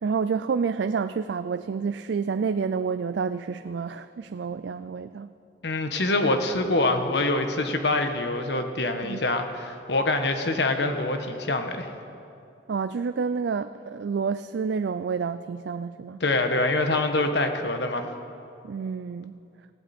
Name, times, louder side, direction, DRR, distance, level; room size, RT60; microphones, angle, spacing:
voice 1, 0.0-5.3 9.0-9.2 12.7-16.2 18.6-19.3, right 5 dB, 80° right, 11 dB, 0.4 m, -29 dB
voice 2, 5.6-11.9 16.2-18.1, left 2 dB, 80° left, 6 dB, 1.3 m, -25 dB
19.0 x 15.5 x 4.3 m, 2.6 s
head